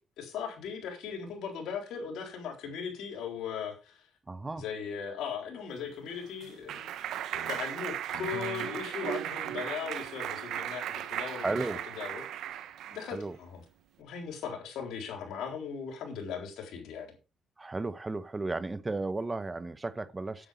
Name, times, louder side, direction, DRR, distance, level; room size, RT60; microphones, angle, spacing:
voice 1, 0.2-4.1 4.6-6.9 7.3-11.7 12.0-12.5 12.9-13.6 14.0-17.1, left 6 dB, 85° left, 3.8 m, -38 dB
voice 2, 4.3-4.6 11.0-11.8 13.1-13.4 17.6-20.5, right 3 dB, 20° right, 1.0 m, -34 dB
Clapping, 5.8-13.1, right 11 dB, 80° right, 0.9 m, -36 dB
9.9 x 8.8 x 5.2 m
cardioid pair, 90°, 0 cm